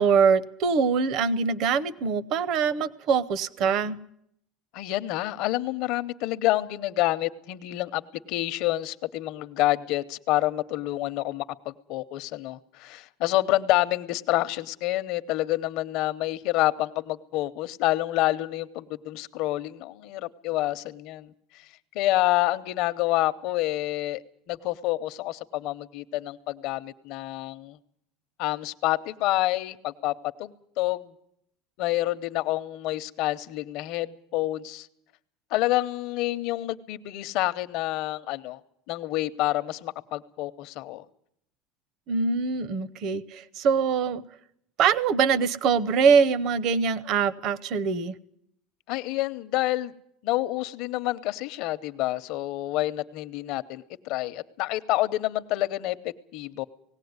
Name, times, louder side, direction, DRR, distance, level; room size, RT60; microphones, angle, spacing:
voice 1, 0.0-4.0 42.1-44.2 44.8-48.1, right 6 dB, 45° right, 20 dB, 0.7 m, -23 dB
voice 2, 4.7-8.0 8.3-21.3 21.9-24.2 24.5-27.8 28.4-30.1 30.4-31.1 31.8-34.9 35.5-38.6 38.9-41.0 48.9-49.9 50.2-56.6, left 16 dB, 55° left, 12 dB, 0.8 m, -28 dB
19.0 x 16.5 x 9.5 m, 0.73 s
cardioid pair, 165°, 0 cm